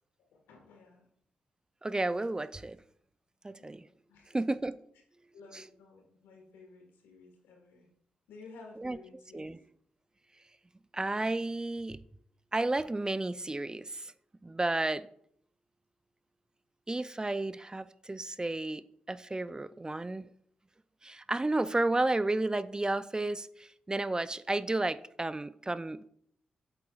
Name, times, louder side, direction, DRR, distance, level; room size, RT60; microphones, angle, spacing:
voice 1, 0.3-1.0 3.6-3.8 4.1-4.3 5.3-7.9 8.3-9.5, left 3 dB, 85° left, 1.5 m, -53 dB
voice 2, 1.8-2.8 3.4-3.9 4.3-4.8 5.5-5.7 8.8-9.0 9.3-9.6 10.9-12.0 12.5-14.1 14.4-15.1 16.9-20.3 21.0-26.1, right 2 dB, 20° right, 0.4 m, -32 dB
8.4 x 7.7 x 2.4 m
hypercardioid pair, 40°, 3 cm